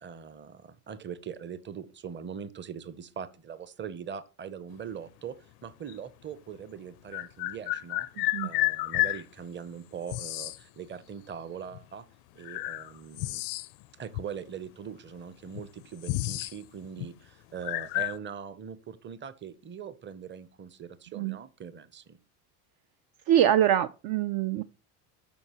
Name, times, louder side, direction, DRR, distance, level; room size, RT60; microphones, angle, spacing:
voice 1, 0.0-5.4 5.6-8.1 8.4-12.0 12.4-13.4 14.0-22.2, right 7 dB, 25° right, 0.7 m, -41 dB
sound 1, 5.9-6.0 7.1-9.2 10.1-10.6 11.7-11.8 12.4-13.8 14.1-14.3 15.1-15.2 15.5-16.6 16.8-17.1 17.6-18.2, left 20 dB, 65° left, 0.5 m, -31 dB
voice 2, 8.2-8.5 21.2-21.4 23.3-24.6, right 11 dB, 55° right, 0.5 m, -24 dB
12.5 x 4.5 x 3.0 m
supercardioid pair, 90°, 44 cm